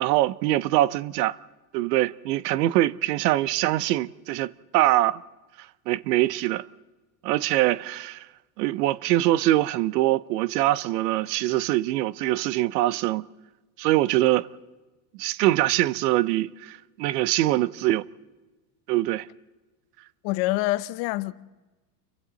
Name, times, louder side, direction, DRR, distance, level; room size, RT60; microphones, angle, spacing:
voice 1, 0.0-1.4 1.7-5.2 5.9-6.7 7.2-8.3 8.6-13.2 13.8-14.5 15.2-18.0 18.9-19.3, right 16 dB, 75° right, 0.8 m, -23 dB
voice 2, 20.2-21.3, left 18 dB, 50° left, 0.8 m, -26 dB
29.5 x 23.5 x 4.0 m
supercardioid pair, 135°, 49 cm